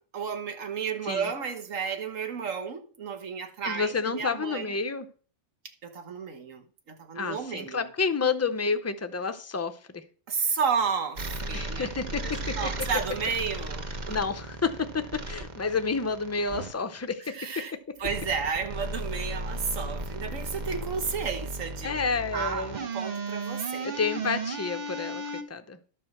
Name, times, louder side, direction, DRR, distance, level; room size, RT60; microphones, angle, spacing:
voice 1, 0.1-4.7 5.8-7.9 10.3-14.2 17.3-22.0 22.3-23.9, right 6 dB, 90° right, 1.6 m, -32 dB
voice 2, 3.6-5.1 7.1-10.0 11.5-12.6 14.1-17.4 21.8-22.8 23.8-25.8, left 4 dB, 25° left, 0.3 m, -30 dB
sound 1, 11.2-16.7 18.0-25.4, right 2 dB, 40° right, 1.0 m, -35 dB
11.5 x 4.5 x 6.5 m
omnidirectional pair, 1.3 m